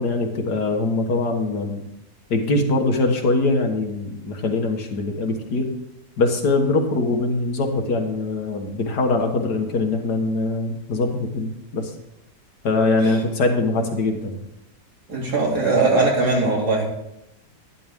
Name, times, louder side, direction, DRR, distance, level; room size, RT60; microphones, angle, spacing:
voice 1, 0.0-1.8 2.3-5.7 6.2-11.9 12.6-14.4, left 3 dB, 65° left, 3 dB, 1.9 m, -22 dB
voice 2, 15.1-16.9, right 3 dB, 60° right, -2 dB, 3.2 m, -20 dB
11.5 x 11.0 x 3.6 m, 0.85 s
omnidirectional pair, 1.9 m